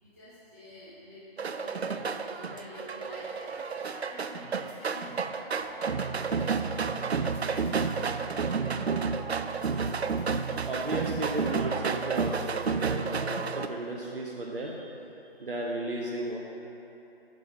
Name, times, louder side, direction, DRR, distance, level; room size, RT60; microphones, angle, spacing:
voice 1, 0.0-9.1 10.0-10.8 14.5-14.8 15.1-15.6, equal, 15° right, -13 dB, 0.6 m, -48 dB
sound 1, 1.4-13.7, right 5 dB, 90° right, 0.5 m, -31 dB
voice 2, 10.6-14.7 15.4-16.4, right 1 dB, 60° right, -2 dB, 0.9 m, -34 dB
9.9 x 3.5 x 6.5 m, 3.0 s
figure-of-eight pair, 150°, 31 cm